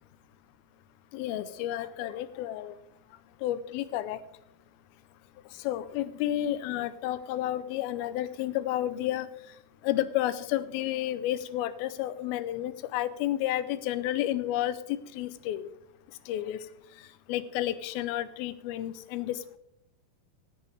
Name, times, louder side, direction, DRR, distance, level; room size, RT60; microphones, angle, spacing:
voice 1, 1.1-2.8 3.4-4.2 5.6-9.3 9.8-15.7 16.3-16.6 17.3-19.6, left 13 dB, 85° left, 15 dB, 2.5 m, -31 dB
17.5 x 8.6 x 3.4 m, 0.80 s
omnidirectional pair, 4.3 m